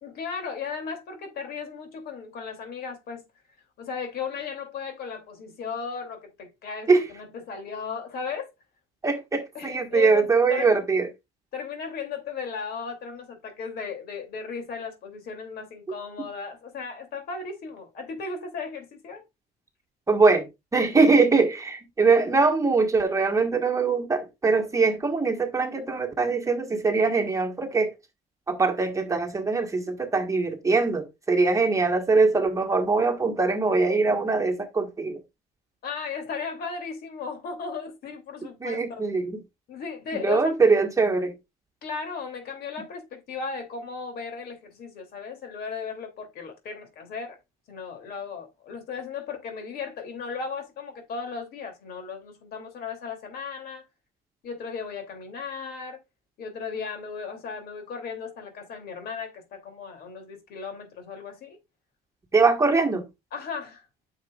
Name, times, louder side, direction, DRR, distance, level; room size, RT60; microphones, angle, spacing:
voice 1, 0.0-3.2 3.8-8.5 9.5-10.9 11.5-19.2 35.8-39.0 39.7-40.6 41.8-47.4 47.7-53.8 54.4-56.0 56.4-61.6 63.3-63.8, left 5 dB, 65° left, 2.8 m, -36 dB
voice 2, 9.0-11.1 16.2-16.3 20.1-27.9 28.5-35.2 38.6-39.4 40.1-41.3 62.3-63.0, right 4 dB, 20° right, 1.5 m, -22 dB
9.4 x 6.4 x 2.4 m
cardioid pair, 110°, 17 cm